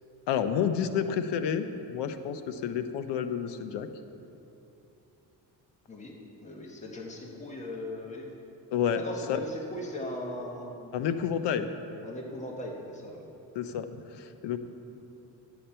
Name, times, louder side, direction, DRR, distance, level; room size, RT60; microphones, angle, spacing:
voice 1, 0.3-3.9 8.7-9.4 10.9-11.7 13.5-14.6, left 8 dB, 85° left, 9 dB, 0.8 m, -30 dB
voice 2, 5.9-8.3 9.0-10.9 12.0-13.3, left 1 dB, 15° left, -1 dB, 1.2 m, -39 dB
12.5 x 8.6 x 4.4 m, 2.9 s
cardioid pair, 140°, 41 cm